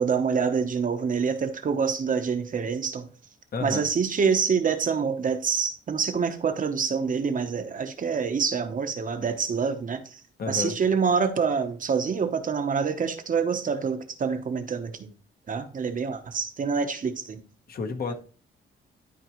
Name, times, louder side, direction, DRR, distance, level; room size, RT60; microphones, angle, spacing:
voice 1, 0.0-3.1 3.6-10.2 10.5-15.1 15.5-17.4, right 6 dB, 40° right, 0.9 m, -26 dB
voice 2, 3.5-3.9 10.4-10.8 17.7-18.1, left 4 dB, 45° left, 1.1 m, -30 dB
12.0 x 4.6 x 3.0 m
wide cardioid pair, 145°, 21 cm